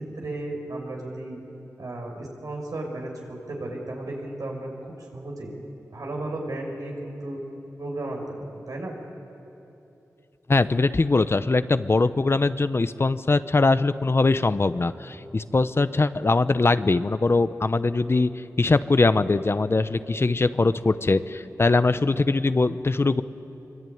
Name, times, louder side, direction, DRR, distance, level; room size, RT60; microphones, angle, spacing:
voice 1, 0.0-1.4 1.8-3.1 3.5-5.5 5.9-7.4 7.8-8.9, right 2 dB, 75° right, 0 dB, 6.0 m, -34 dB
voice 2, 10.5-18.3 18.6-23.2, left 3 dB, 40° left, 12 dB, 0.8 m, -22 dB
24.0 x 23.5 x 9.4 m, 2.9 s
cardioid pair, 60°, 6 cm